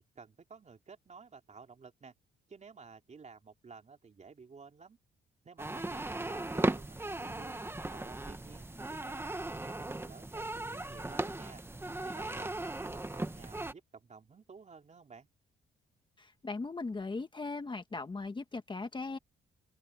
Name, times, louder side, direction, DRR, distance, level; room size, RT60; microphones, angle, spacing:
voice 1, 0.0-2.1 2.5-5.0 5.4-11.6 12.0-15.3, right 5 dB, 35° right, 3.3 m, -54 dB
sound 1, 5.6-13.7, right 2 dB, 10° right, 1.4 m, -37 dB
voice 2, 16.2-19.2, left 3 dB, 25° left, 1.6 m, -38 dB
open air
cardioid pair, 90°, 20 cm